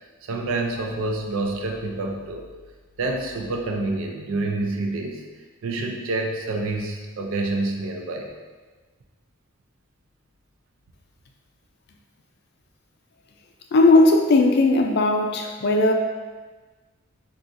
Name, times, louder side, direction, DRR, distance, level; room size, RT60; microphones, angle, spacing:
voice 1, 0.2-2.5 3.0-5.2 5.6-8.3, right 2 dB, 80° right, 2 dB, 0.4 m, -27 dB
voice 2, 13.7-15.9, left 2 dB, 50° left, 3 dB, 0.3 m, -17 dB
3.8 x 2.4 x 2.5 m, 1.3 s
head